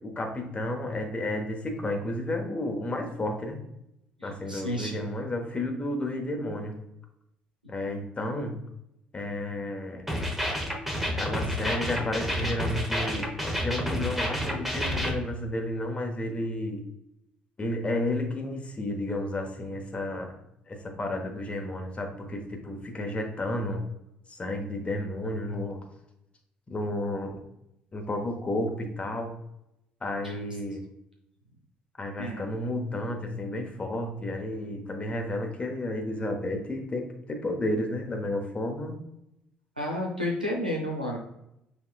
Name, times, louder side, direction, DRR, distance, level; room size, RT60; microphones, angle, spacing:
voice 1, 0.0-3.6 4.2-6.8 7.7-8.6 9.1-10.1 11.0-16.8 17.6-20.3 20.7-23.8 24.3-25.8 26.7-27.4 27.9-29.3 30.0-30.8 32.0-39.0, left 1 dB, 25° left, 3 dB, 1.0 m, -32 dB
voice 2, 4.2-4.9 30.2-30.4 32.2-32.4 39.8-41.2, left 1 dB, 90° right, -1 dB, 0.7 m, -31 dB
sound 1, 10.1-15.1, equal, 5° right, 0.9 m, -29 dB
5.6 x 3.5 x 2.3 m, 0.83 s
figure-of-eight pair, 50°, 5 cm